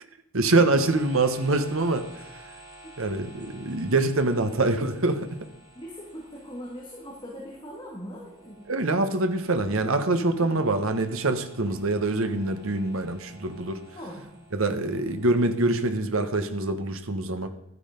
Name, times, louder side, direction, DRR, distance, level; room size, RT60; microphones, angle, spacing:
voice 1, 0.3-2.1 3.0-5.3 8.7-13.8 14.5-17.5, right 2 dB, 70° right, 8 dB, 1.2 m, -25 dB
sound 1, 0.7-16.5, right 2 dB, 20° right, 5.0 m, -51 dB
voice 2, 5.7-8.6 10.4-10.6 11.6-11.7 13.9-14.3, equal, 20° left, -3 dB, 2.4 m, -40 dB
12.5 x 9.9 x 5.2 m, 0.81 s
head